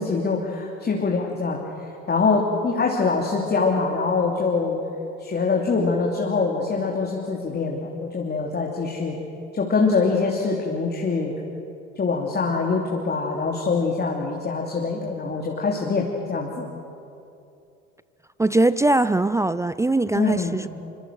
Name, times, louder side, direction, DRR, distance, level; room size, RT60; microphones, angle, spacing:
voice 1, 0.0-1.6 2.1-4.8 5.2-9.2 9.5-11.3 11.9-16.7 20.1-20.6, left 4 dB, 30° left, 0 dB, 2.9 m, -24 dB
voice 2, 18.4-20.7, right 2 dB, 10° right, 16 dB, 0.5 m, -21 dB
26.0 x 24.5 x 6.3 m, 2.6 s
hypercardioid pair, 65°, 35 cm